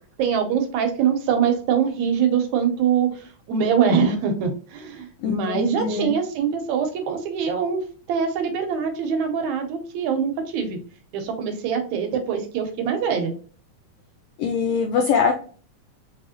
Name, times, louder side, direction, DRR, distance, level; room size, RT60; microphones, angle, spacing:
voice 1, 0.2-10.8 11.1-13.4, right 7 dB, 75° right, 5 dB, 2.0 m, -23 dB
voice 2, 5.2-6.2 14.4-15.3, left 6 dB, 85° left, 4 dB, 1.4 m, -23 dB
4.9 x 3.0 x 2.8 m, 0.41 s
omnidirectional pair, 3.5 m